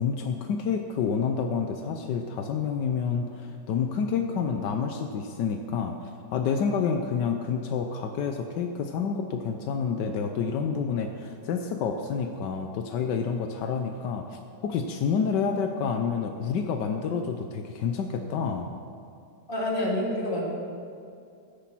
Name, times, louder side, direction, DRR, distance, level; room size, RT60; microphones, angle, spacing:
voice 1, 0.0-18.7, left 6 dB, 80° left, 5 dB, 1.4 m, -29 dB
voice 2, 19.5-20.4, left 1 dB, 30° left, -4 dB, 2.9 m, -27 dB
13.5 x 10.0 x 6.1 m, 2.4 s
omnidirectional pair, 1.8 m